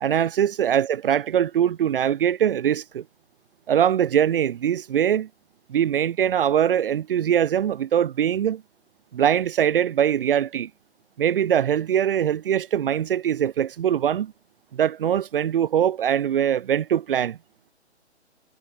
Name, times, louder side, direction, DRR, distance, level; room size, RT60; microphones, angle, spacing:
voice 1, 0.0-3.0 3.7-5.3 5.7-8.6 9.1-10.7 11.2-14.3 14.7-17.4, right 9 dB, 50° right, 1.3 m, -22 dB
figure-of-eight pair, 135°, 35 cm